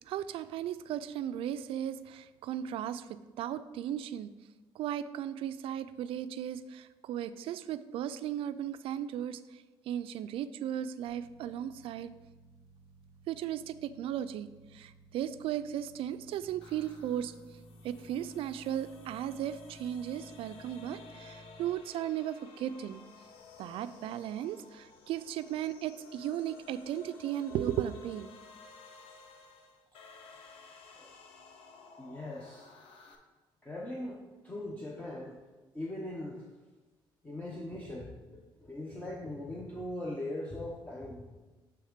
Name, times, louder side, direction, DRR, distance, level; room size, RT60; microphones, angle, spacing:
voice 1, 0.1-3.0 3.4-4.3 4.8-9.4 9.9-12.1 13.3-14.5 14.7-17.3 17.8-23.0 23.6-28.3, right 10 dB, 75° right, 12 dB, 0.4 m, -36 dB
sound 1, 11.1-21.7, right 1 dB, 35° left, 1.5 m, -57 dB
sound 2, 16.6-33.2, left 4 dB, 85° left, 0.8 m, -54 dB
voice 2, 32.0-32.7 33.6-35.4 35.7-36.5 37.2-41.4, left 1 dB, 15° left, -2 dB, 0.8 m, -40 dB
7.8 x 3.5 x 5.0 m, 1.2 s
cardioid pair, 110°, 9 cm